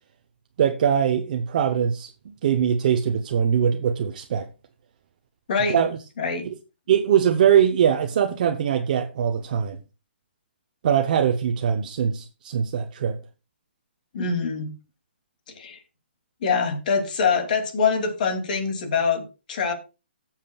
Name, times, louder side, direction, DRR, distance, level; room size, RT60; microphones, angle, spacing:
voice 1, 0.6-2.1 2.4-4.5 5.7-5.9 6.5-6.6 6.9-9.8 10.8-13.2, right 8 dB, 45° right, 0.9 m, -22 dB
voice 2, 5.5-5.8 6.2-6.5 14.1-14.7 15.5-15.8 16.4-19.7, left 5 dB, 50° left, 2.7 m, -24 dB
16.5 x 7.4 x 2.4 m
hypercardioid pair, 160°, 6 cm